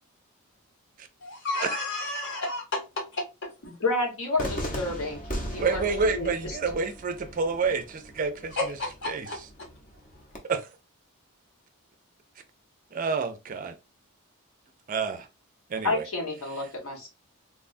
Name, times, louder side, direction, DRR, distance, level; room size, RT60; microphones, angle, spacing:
voice 1, 1.2-2.8 3.1-3.5 8.6-9.4, left 2 dB, 55° left, 1.1 m, -31 dB
voice 2, 3.8-5.2 5.5-5.8 6.1-6.5 15.8-17.1, left 2 dB, 80° left, 1.1 m, -29 dB
Cheering / Fireworks, 4.4-10.4, equal, 35° left, 0.7 m, -38 dB
voice 3, 5.6-8.8 9.1-9.3 10.5-10.6 12.9-13.7 14.9-15.3 15.7-16.0, right 4 dB, 40° right, 0.4 m, -28 dB
3.4 x 2.2 x 2.4 m
head